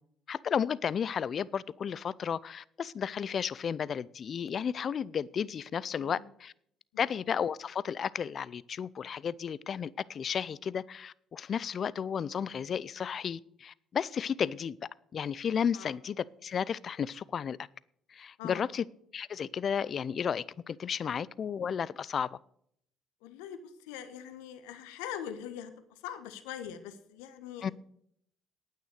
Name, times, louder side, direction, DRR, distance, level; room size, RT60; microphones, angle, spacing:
voice 1, 0.3-6.5 7.0-14.8 15.1-17.6 18.1-18.8 19.1-22.4 27.6-27.7, left 7 dB, 50° left, 0.5 m, -33 dB
voice 2, 5.9-6.3 6.9-7.1 15.7-16.0 18.4-18.7 23.2-27.7, left 9 dB, 85° left, 1.3 m, -43 dB
9.3 x 9.2 x 8.1 m
hypercardioid pair, 55°, 0 cm